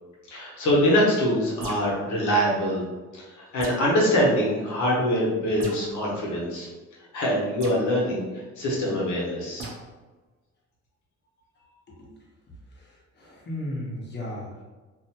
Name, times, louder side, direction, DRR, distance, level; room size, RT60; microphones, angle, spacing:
voice 1, 0.3-2.8 3.2-6.7 7.1-8.2 8.6-9.7, equal, 75° left, -5 dB, 0.9 m, -24 dB
sound 1, 1.6-2.0 3.6-4.0 5.6-5.9 7.6-7.8 9.6-9.8, right 2 dB, 50° right, 0.7 m, -37 dB
voice 2, 13.2-14.6, left 1 dB, 35° left, -4 dB, 1.0 m, -35 dB
2.5 x 2.1 x 2.8 m, 1.2 s
cardioid pair, 90°, 30 cm